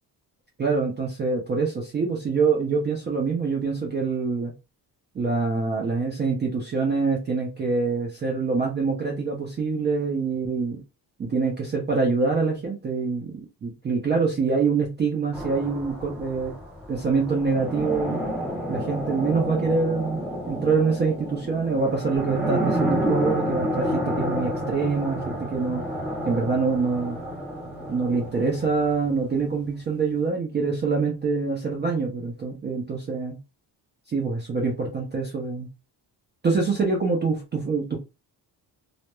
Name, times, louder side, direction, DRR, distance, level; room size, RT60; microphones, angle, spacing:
voice 1, 0.6-4.5 5.2-10.8 11.2-16.5 16.9-18.3 18.7-25.8 26.3-27.2 27.9-33.4 34.1-35.7 36.4-38.0, right 4 dB, 25° right, -1 dB, 0.4 m, -25 dB
sound 1, 15.3-29.1, equal, 5° right, 0.9 m, -30 dB
Bass guitar, 22.2-28.4, right 12 dB, 65° right, 0.9 m, -38 dB
2.2 x 2.0 x 2.9 m, 0.28 s
cardioid pair, 170°, 41 cm